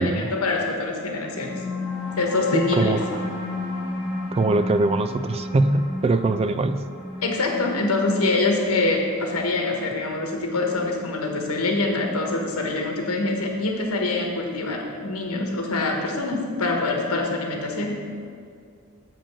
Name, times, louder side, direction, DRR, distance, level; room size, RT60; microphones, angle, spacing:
voice 1, 0.0-1.6 2.2-3.2 7.2-18.0, left 2 dB, 75° left, 1 dB, 1.3 m, -25 dB
sound 1, 1.1-12.0, left 2 dB, 5° right, 1.8 m, -33 dB
voice 2, 2.5-3.0 4.3-6.8, right 2 dB, 25° right, 11 dB, 0.3 m, -22 dB
7.1 x 5.1 x 7.2 m, 2.2 s
head